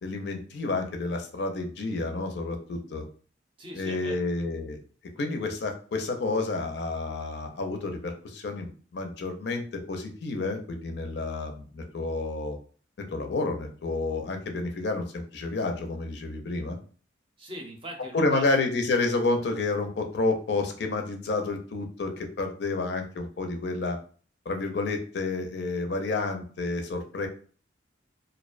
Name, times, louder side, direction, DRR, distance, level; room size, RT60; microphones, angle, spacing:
voice 1, 0.0-3.0 3.8-4.8 5.2-12.6 13.1-16.8 18.1-24.0 24.5-27.3, left 3 dB, 60° left, 5 dB, 0.4 m, -30 dB
voice 2, 3.6-4.2 17.4-18.4 20.6-20.7, right 1 dB, 30° right, 1 dB, 0.5 m, -41 dB
2.5 x 2.1 x 2.4 m, 0.41 s
head